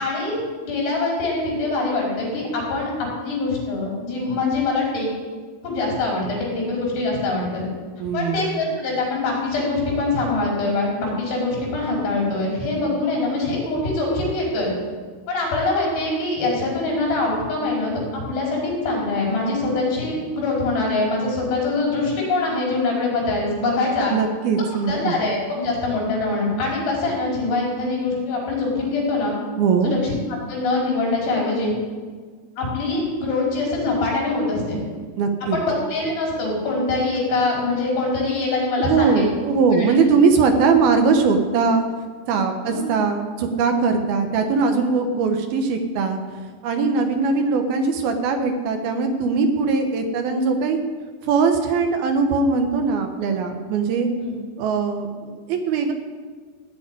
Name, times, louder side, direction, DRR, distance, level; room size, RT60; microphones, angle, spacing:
voice 1, 0.0-5.1 5.6-7.6 8.1-14.7 15.3-24.1 24.9-29.4 29.8-31.7 32.6-34.8 35.5-39.3 39.7-39.9 42.6-42.9 54.2-54.3, left 2 dB, 75° left, -2 dB, 6.5 m, -23 dB
voice 2, 8.0-8.6 24.1-25.1 29.6-29.9 35.2-35.6 38.8-41.9 42.3-46.2 46.6-50.8 51.2-54.1 54.6-55.9, right 4 dB, 70° right, 6 dB, 2.8 m, -20 dB
16.5 x 7.1 x 9.7 m, 1.5 s
omnidirectional pair, 4.9 m